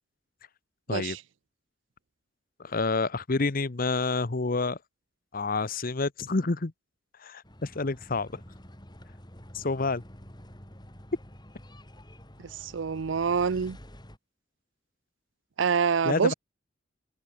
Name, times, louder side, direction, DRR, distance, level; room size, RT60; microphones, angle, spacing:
voice 1, 0.9-1.2 12.4-13.8 15.6-16.3, right 6 dB, 85° right, 0.5 m, -26 dB
voice 2, 2.6-4.8 5.3-6.7 7.2-8.3 9.5-10.0 16.0-16.3, left 3 dB, 50° left, 0.9 m, -28 dB
sound 1, 7.4-14.2, equal, 25° left, 6.0 m, -49 dB
head